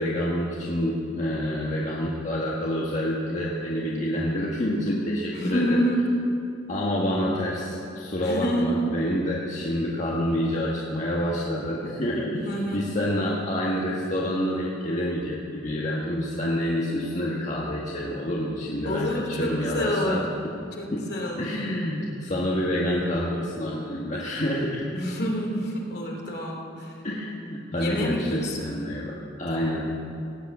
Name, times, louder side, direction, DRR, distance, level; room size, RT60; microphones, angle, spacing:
voice 1, 0.0-5.8 6.7-20.5 20.9-21.1 21.4-24.9 27.0-30.0, left 1 dB, 40° left, -4 dB, 1.5 m, -28 dB
voice 2, 5.3-6.2 8.2-8.8 12.4-13.4 18.8-20.2 20.8-21.5 24.9-27.0 27.8-28.7 29.5-29.7, equal, 55° left, 0 dB, 2.9 m, -28 dB
17.5 x 8.7 x 8.8 m, 2.7 s
head